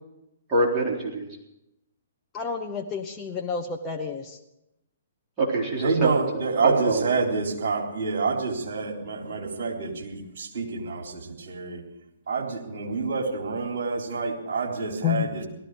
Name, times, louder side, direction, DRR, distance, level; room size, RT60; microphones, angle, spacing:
voice 1, 0.5-1.4 5.4-7.1, right 2 dB, 25° right, -4 dB, 4.1 m, -25 dB
voice 2, 2.3-4.4 15.0-15.3, left 7 dB, 25° left, 2 dB, 1.2 m, -29 dB
voice 3, 5.8-11.8 12.3-15.5, right 4 dB, 55° right, 1 dB, 3.7 m, -28 dB
17.5 x 14.0 x 4.9 m, 0.87 s
figure-of-eight pair, 125°, 0 cm